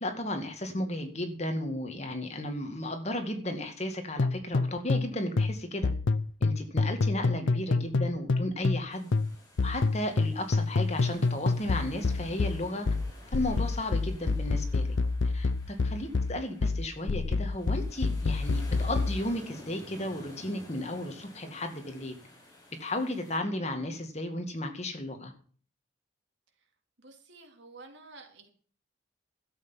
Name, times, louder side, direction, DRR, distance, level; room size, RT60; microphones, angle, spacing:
voice 1, 0.0-5.9 6.4-9.1 9.6-12.9 13.3-14.9 15.3-22.2 22.8-25.3, left 1 dB, 35° left, 6 dB, 2.1 m, -34 dB
sound 1, 4.2-8.9 9.1-19.2, left 3 dB, 85° left, 0.6 m, -27 dB
sound 2, 8.9-23.4, left 1 dB, 20° left, 5.1 m, -52 dB
voice 2, 27.0-28.5, right 3 dB, 75° right, 4 dB, 3.2 m, -50 dB
12.5 x 8.2 x 7.3 m, 0.43 s
head